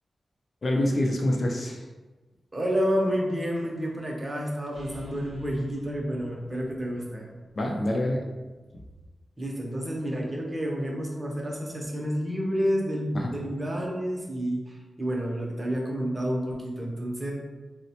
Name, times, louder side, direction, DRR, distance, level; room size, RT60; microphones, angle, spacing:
voice 1, 0.6-1.8 7.5-8.2 8.7-8.8 13.1-13.3, left 1 dB, 45° left, 0 dB, 0.5 m, -26 dB
voice 2, 2.5-7.3 9.4-17.3, equal, 20° right, -1 dB, 0.6 m, -29 dB
sound 1, 4.7-8.5, left 1 dB, 60° right, 0.7 m, -49 dB
4.0 x 2.1 x 2.8 m, 1.2 s
wide cardioid pair, 115°, 0 cm